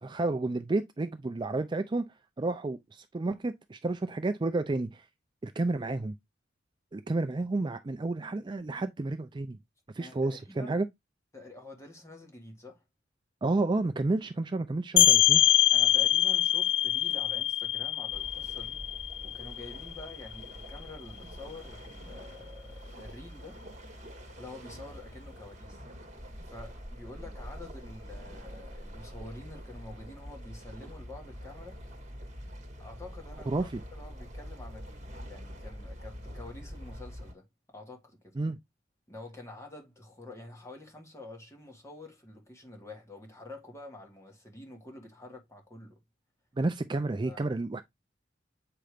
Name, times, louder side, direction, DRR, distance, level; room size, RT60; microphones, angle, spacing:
voice 1, 0.0-2.1 2.4-5.1 5.4-6.1 6.9-9.6 9.9-10.9 13.4-15.4 33.5-33.8 38.4-38.6 46.6-47.8, right 2 dB, 25° right, 0.4 m, -31 dB
voice 2, 10.0-10.8 11.3-12.8 15.7-18.8 19.2-23.6 24.4-25.8 26.5-31.8 32.8-38.4 39.1-46.0 47.2-47.4, left 2 dB, 15° left, 1.9 m, -48 dB
sound 1, 15.0-20.4, left 12 dB, 70° left, 0.5 m, -24 dB
sound 2, 18.1-37.3, equal, 40° right, 1.7 m, -45 dB
7.7 x 3.0 x 5.0 m
head